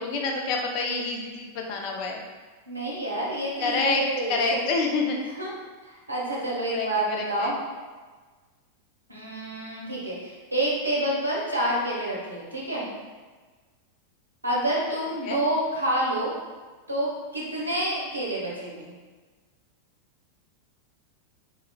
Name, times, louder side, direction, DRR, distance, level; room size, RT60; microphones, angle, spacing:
voice 1, 0.0-2.2 3.6-4.0 4.3-5.2 6.7-6.9 7.2-7.5 15.2-15.4, left 3 dB, 45° left, 1 dB, 0.4 m, -27 dB
voice 2, 2.7-4.6 5.2-5.5 5.8-7.5 9.1-12.9 14.4-16.3 16.9-18.9, right 1 dB, 85° right, -5 dB, 0.7 m, -28 dB
3.0 x 2.3 x 2.2 m, 1.4 s
figure-of-eight pair, 90°, 0 cm